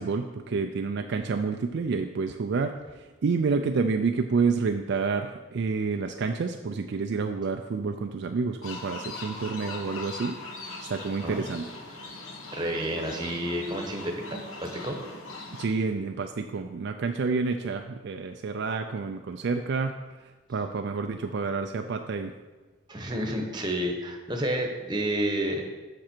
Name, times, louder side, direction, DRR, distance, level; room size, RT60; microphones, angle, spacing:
voice 1, 0.0-2.8 3.2-10.4 10.9-11.7 15.6-19.9 20.5-22.3, right 4 dB, 55° right, 5 dB, 0.4 m, -29 dB
sound 1, 8.6-15.6, left 2 dB, 75° left, 1.1 m, -40 dB
voice 2, 12.5-15.0 22.9-25.6, right 1 dB, 20° right, 2 dB, 1.0 m, -30 dB
7.4 x 6.1 x 4.4 m, 1.2 s
head